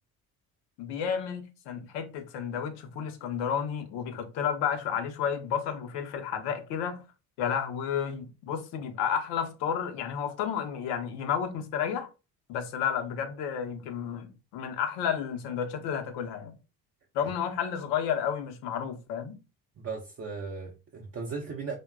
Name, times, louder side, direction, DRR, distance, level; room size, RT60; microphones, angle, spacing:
voice 1, 0.8-7.0 7.4-12.1 12.5-16.5 17.1-19.4, left 8 dB, 75° left, 0.7 m, -31 dB
voice 2, 19.8-21.8, right 4 dB, 35° right, 0.5 m, -37 dB
2.8 x 2.2 x 2.3 m
supercardioid pair, 65°, 43 cm